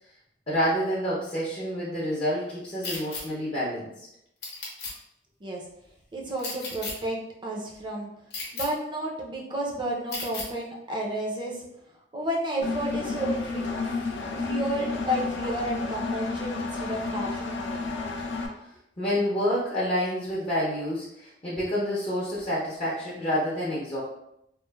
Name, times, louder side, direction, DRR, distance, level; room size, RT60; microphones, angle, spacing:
voice 1, 0.5-3.9 19.0-24.0, equal, 35° left, -8 dB, 0.6 m, -28 dB
sound 1, 2.8-3.2 4.4-4.9 6.4-6.9 8.3-8.7 10.1-10.5, left 3 dB, 65° left, 0.8 m, -34 dB
voice 2, 6.1-8.1 8.5-11.6 12.1-14.0 14.3-18.0, right 1 dB, 25° right, -2 dB, 0.5 m, -32 dB
Engine, 12.6-18.5, left 3 dB, 85° left, 0.4 m, -31 dB
3.0 x 2.0 x 2.2 m, 0.80 s
head